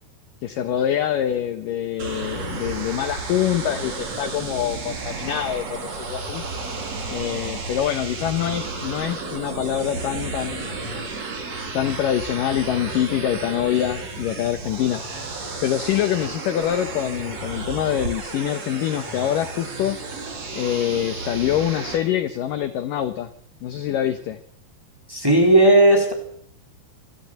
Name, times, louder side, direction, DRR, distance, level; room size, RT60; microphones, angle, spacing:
voice 1, 0.4-6.4 7.1-11.1 11.7-15.0 15.6-20.0 20.5-23.3 23.6-24.4, left 11 dB, 70° left, 11 dB, 2.1 m, -25 dB
sound 1, 2.0-22.0, right 3 dB, 40° right, 4.2 m, -32 dB
voice 2, 25.1-26.1, right 1 dB, 5° right, 2 dB, 3.9 m, -15 dB
25.0 x 14.0 x 8.0 m, 0.63 s
omnidirectional pair, 5.1 m